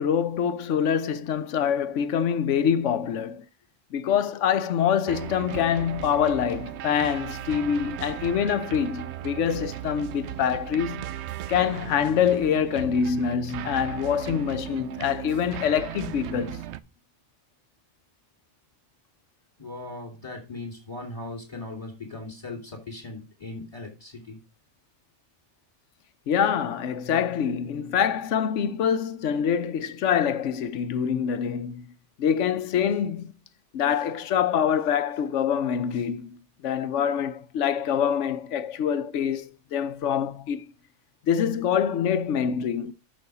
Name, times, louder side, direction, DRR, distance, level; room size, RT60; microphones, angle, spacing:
voice 1, 0.0-3.4 3.9-11.1 11.5-16.6 26.3-31.8 32.2-33.3 33.7-36.4 36.6-40.6 41.3-42.9, left 8 dB, 85° left, 1.0 m, -25 dB
sound 1, 5.1-16.8, right 12 dB, 70° right, 0.8 m, -36 dB
voice 2, 19.6-24.4, left 2 dB, 30° left, 2.8 m, -38 dB
6.8 x 6.4 x 4.7 m
omnidirectional pair, 1.2 m